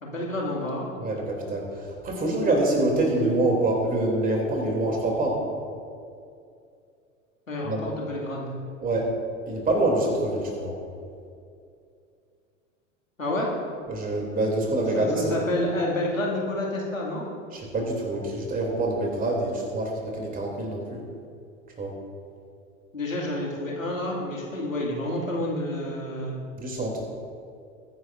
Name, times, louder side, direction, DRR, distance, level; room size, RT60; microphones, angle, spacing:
voice 1, 0.0-0.9 7.5-8.5 13.2-13.5 14.9-17.3 22.9-26.4, left 1 dB, 85° left, -3 dB, 2.5 m, -29 dB
voice 2, 1.0-5.5 7.6-7.8 8.8-9.1 9.5-10.7 13.9-15.5 17.5-21.0 21.8-21.9 26.6-27.0, right 2 dB, 20° right, 0 dB, 3.0 m, -26 dB
21.0 x 10.0 x 2.6 m, 2.4 s
figure-of-eight pair, 85°, 38 cm